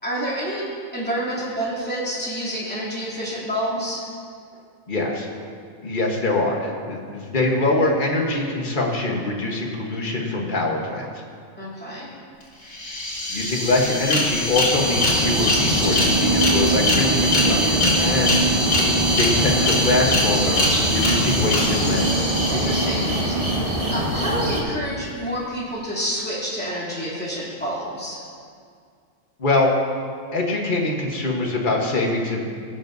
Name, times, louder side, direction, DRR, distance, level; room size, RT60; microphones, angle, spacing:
voice 1, 0.0-4.1 11.6-12.1 22.5-28.3, equal, 5° left, -9 dB, 2.7 m, -28 dB
voice 2, 4.9-5.3 5.8-11.1 13.3-18.4 19.2-20.6 20.9-22.3 29.4-29.7 30.3-32.4, left 2 dB, 40° left, 0 dB, 1.3 m, -23 dB
sound 1, 12.4-12.5 12.7-23.5, left 2 dB, 80° left, 2.6 m, -24 dB
sound 2, 14.7-24.6, right 2 dB, 25° right, 1.2 m, -23 dB
17.5 x 7.3 x 2.6 m, 2.2 s
omnidirectional pair, 1.4 m